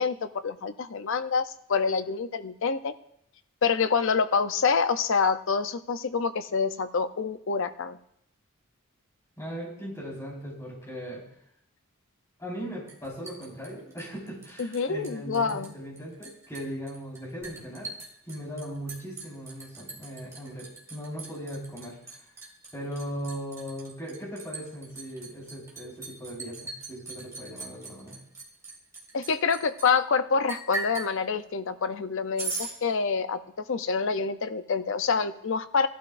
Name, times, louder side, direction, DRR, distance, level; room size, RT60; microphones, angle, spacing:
voice 1, 0.0-2.9 3.6-8.0 14.6-15.7 29.1-35.9, left 5 dB, 60° left, 11 dB, 0.5 m, -27 dB
voice 2, 9.4-11.2 12.4-17.9 18.2-22.2 22.7-28.2, equal, 15° left, -5 dB, 4.4 m, -38 dB
Liquid, 12.9-14.8 15.0-15.7 16.0-29.9 30.5-31.1 32.4-32.7, right 3 dB, 15° right, 2.1 m, -39 dB
16.0 x 12.0 x 2.5 m, 0.74 s
head